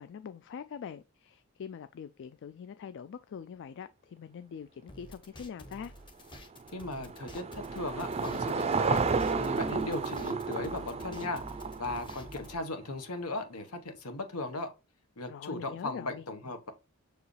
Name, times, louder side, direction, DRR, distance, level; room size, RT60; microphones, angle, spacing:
voice 1, 0.0-5.9 15.3-16.3, left 7 dB, 55° left, 0.3 m, -43 dB
sound 1, 4.9-12.6, equal, 20° left, 1.0 m, -49 dB
Car passing by / Engine, 6.3-12.7, right 4 dB, 30° right, 0.4 m, -32 dB
voice 2, 6.7-9.0 9.4-11.4 11.8-14.7 15.2-16.7, left 2 dB, 90° left, 1.3 m, -37 dB
6.4 x 4.8 x 3.3 m
head